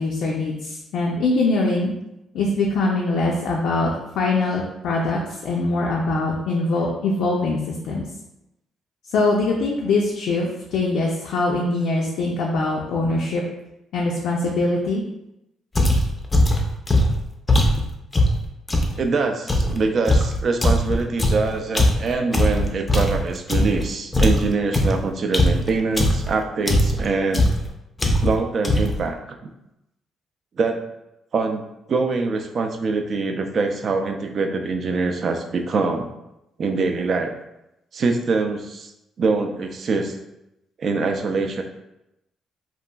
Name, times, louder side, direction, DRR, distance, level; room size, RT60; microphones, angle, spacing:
voice 1, 0.0-1.9 2.3-7.6 7.8-8.1 9.1-13.4 13.9-15.0, left 2 dB, 85° left, -2 dB, 0.4 m, -22 dB
sound 1, 15.8-19.0 19.5-23.9 24.1-26.3 26.7-27.1 27.3-27.7 28.0-28.4 28.6-29.0, left 1 dB, 20° left, 0.4 m, -19 dB
voice 2, 19.0-27.5 28.2-29.5 30.6-30.8 31.3-31.6 31.9-36.1 36.6-37.3 37.9-38.9 39.2-40.2 40.8-41.6, right 4 dB, 50° right, 5 dB, 0.3 m, -24 dB
2.8 x 2.4 x 2.2 m, 0.88 s
cardioid pair, 90°, 0 cm